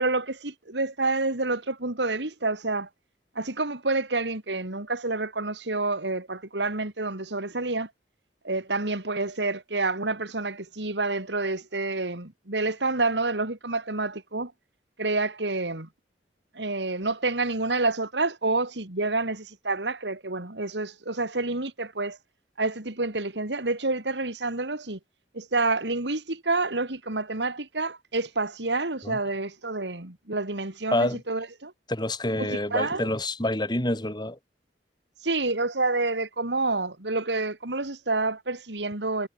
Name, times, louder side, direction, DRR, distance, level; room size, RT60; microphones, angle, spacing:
voice 1, 0.0-2.9 3.3-7.9 8.4-14.5 15.0-15.9 16.5-22.2 22.6-25.0 25.3-31.7 32.3-33.1 35.2-39.3, right 3 dB, 85° right, 3.2 m, -28 dB
voice 2, 31.9-34.4, left 1 dB, 25° left, 4.6 m, -27 dB
head